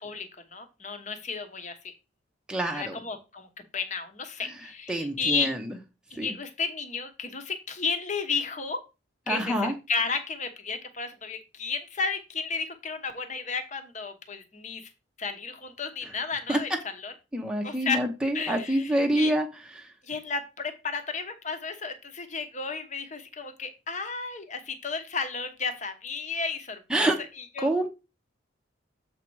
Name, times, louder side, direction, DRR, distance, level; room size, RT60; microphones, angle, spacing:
voice 1, 0.0-1.9 2.7-3.5 3.7-5.5 6.1-8.8 9.3-14.9 15.2-17.1 17.6-18.0 18.3-19.3 20.0-27.1 27.6-27.7, left 5 dB, 35° left, 7 dB, 1.0 m, -33 dB
voice 2, 2.5-3.0 4.9-5.8 6.2-6.3 9.3-9.7 16.5-16.6 17.3-19.5 19.8-19.9 26.9-27.2 27.6-27.9, right 1 dB, 5° right, 2 dB, 0.8 m, -26 dB
7.5 x 4.1 x 4.6 m, 0.28 s
head